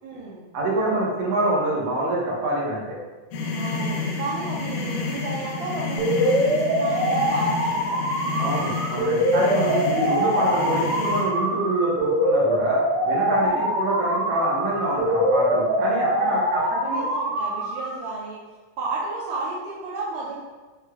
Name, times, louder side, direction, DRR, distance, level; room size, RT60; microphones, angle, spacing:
voice 1, 0.0-0.5 3.5-8.5 13.4-13.7 15.9-18.4 18.8-20.4, right 3 dB, 90° right, -6 dB, 1.5 m, -33 dB
voice 2, 0.5-3.0 8.4-17.0, right 1 dB, 70° right, -5 dB, 1.5 m, -26 dB
sound 1, 3.3-11.2, left 3 dB, 75° left, 2.1 m, -30 dB
sound 2, 6.0-18.0, equal, 55° right, 1.6 m, -24 dB
6.1 x 3.3 x 2.3 m, 1.3 s
omnidirectional pair, 4.1 m